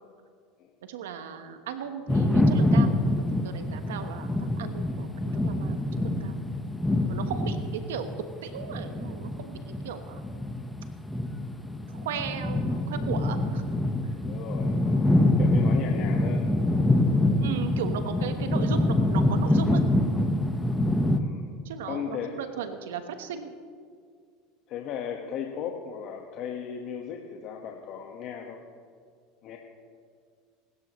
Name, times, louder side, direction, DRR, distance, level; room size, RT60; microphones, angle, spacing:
voice 1, 0.8-2.9 3.2-6.4 7.1-10.2 11.9-13.6 17.4-19.8 21.6-23.5, right 7 dB, 85° right, 8 dB, 1.2 m, -36 dB
sound 1, 2.1-21.2, left 1 dB, 5° left, 1.1 m, -25 dB
voice 2, 14.3-16.5 21.2-21.5 21.9-22.4 24.7-28.6 29.4-29.6, left 8 dB, 55° left, 1 dB, 1.4 m, -36 dB
25.0 x 13.0 x 3.1 m, 2.1 s
hypercardioid pair, 100°, 0 cm